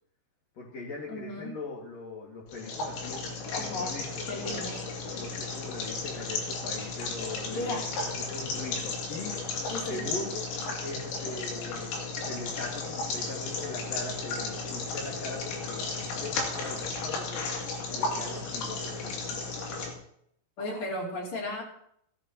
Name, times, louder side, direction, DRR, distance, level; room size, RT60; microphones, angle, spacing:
voice 1, 0.5-4.7 5.1-9.4 9.8-10.5 10.8-17.5 17.9-19.2, left 2 dB, 50° left, -4 dB, 2.0 m, -41 dB
voice 2, 1.1-1.5 3.5-4.0 4.3-4.9 7.5-7.9 9.7-10.0 20.6-21.6, left 1 dB, 35° left, -2 dB, 2.9 m, -35 dB
sound 1, 2.5-19.9, left 3 dB, 80° left, 5.2 m, -34 dB
17.0 x 14.5 x 2.9 m, 0.69 s
omnidirectional pair, 5.8 m